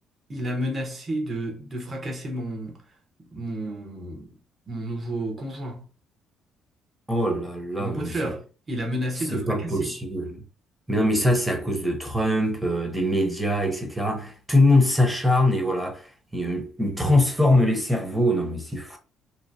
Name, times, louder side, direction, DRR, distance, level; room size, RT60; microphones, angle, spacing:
voice 1, 0.3-2.9 3.3-4.3 4.7-5.9 7.8-9.9, right 1 dB, 35° right, 1.2 m, -31 dB
voice 2, 7.1-8.1 9.3-10.4 10.9-16.1 16.3-19.0, left 1 dB, 5° right, 1.0 m, -23 dB
3.0 x 2.2 x 2.7 m
supercardioid pair, 65°, 0 cm